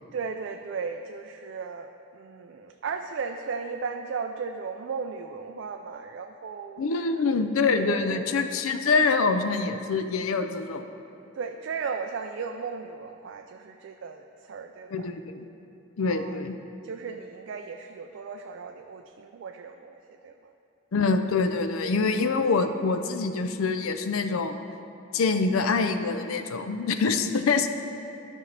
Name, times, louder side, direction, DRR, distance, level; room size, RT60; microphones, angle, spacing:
voice 1, 0.1-6.8 7.8-8.3 11.3-15.1 16.0-16.4 16.8-20.5, right 5 dB, 60° right, 4 dB, 0.3 m, -36 dB
voice 2, 6.8-10.8 14.9-15.4 16.0-16.6 20.9-24.6 25.1-27.7, left 4 dB, 85° left, 8 dB, 0.5 m, -25 dB
13.0 x 5.3 x 3.3 m, 2.7 s
head